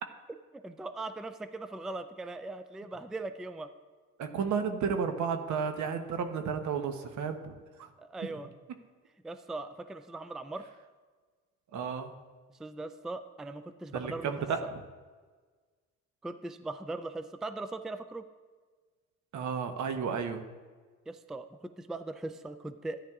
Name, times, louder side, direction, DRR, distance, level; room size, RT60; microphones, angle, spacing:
voice 1, 0.6-3.7 8.0-8.5 9.2-10.7 12.6-14.3 16.2-18.2 21.1-23.0, right 2 dB, ahead, 10 dB, 0.3 m, -39 dB
voice 2, 4.2-7.5 7.8-7.9 8.2-8.3 11.7-12.1 13.9-14.8 19.3-20.4, right 6 dB, 70° right, 7 dB, 0.9 m, -32 dB
13.5 x 10.0 x 2.4 m, 1.4 s
cardioid pair, 90°, 30 cm